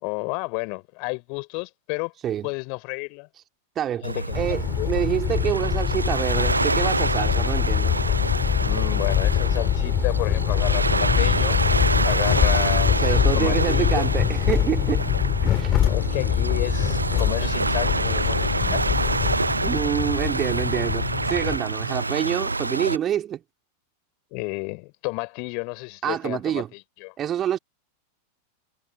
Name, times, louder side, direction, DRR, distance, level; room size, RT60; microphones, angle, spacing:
voice 1, 0.0-2.1 2.4-3.3 4.0-4.9 8.6-11.6 12.0-14.0 15.7-19.0 24.3-27.1, left 38 dB, 45° left, 4.8 m, -32 dB
voice 2, 3.7-4.1 4.3-8.0 13.0-15.0 15.5-15.8 19.6-23.4 26.0-26.7 27.2-27.6, right 10 dB, 30° right, 3.2 m, -27 dB
Waves surf, 4.0-23.0, right 3 dB, 80° right, 0.7 m, -27 dB
sound 1, 4.3-21.6, left 11 dB, 30° left, 4.5 m, -24 dB
figure-of-eight pair, 90°, 0 cm